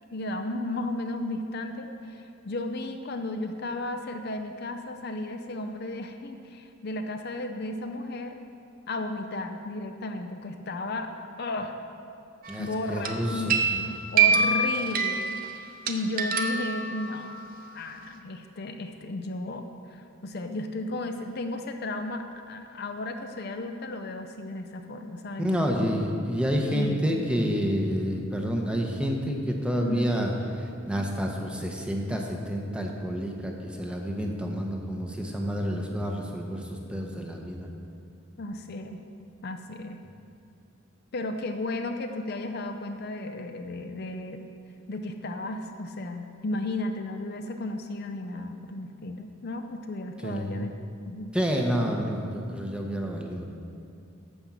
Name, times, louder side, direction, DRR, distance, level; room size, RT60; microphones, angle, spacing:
voice 1, 0.1-8.4 8.9-11.1 11.4-11.8 12.6-15.3 15.9-17.3 17.7-26.0 26.7-27.2 29.8-30.2 38.4-39.0 39.4-40.0 41.1-44.5 44.9-51.3, left 2 dB, 50° left, 6 dB, 0.5 m, -34 dB
sound 1, 12.4-12.7 13.0-17.4, right 5 dB, 45° right, 0.6 m, -26 dB
voice 2, 12.5-13.6 25.4-30.3 30.9-37.7 50.2-50.7 51.3-53.4, equal, 5° right, 0 dB, 0.9 m, -29 dB
11.5 x 5.2 x 7.4 m, 2.4 s
head